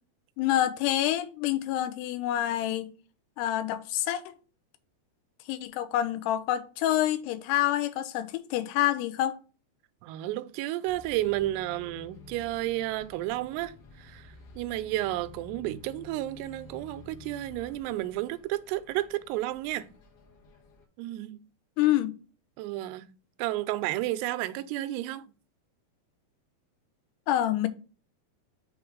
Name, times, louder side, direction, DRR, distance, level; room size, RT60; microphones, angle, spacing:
voice 1, 0.4-2.9 3.4-4.2 5.5-9.4 21.8-22.2 27.3-27.7, left 13 dB, 85° left, 2.7 m, -27 dB
voice 2, 10.0-19.9 21.0-21.4 22.6-23.1 23.4-25.3, right 15 dB, 90° right, 2.6 m, -32 dB
Bus, 10.9-20.9, left 3 dB, 55° left, 1.7 m, -51 dB
6.8 x 3.3 x 4.7 m
omnidirectional pair, 4.7 m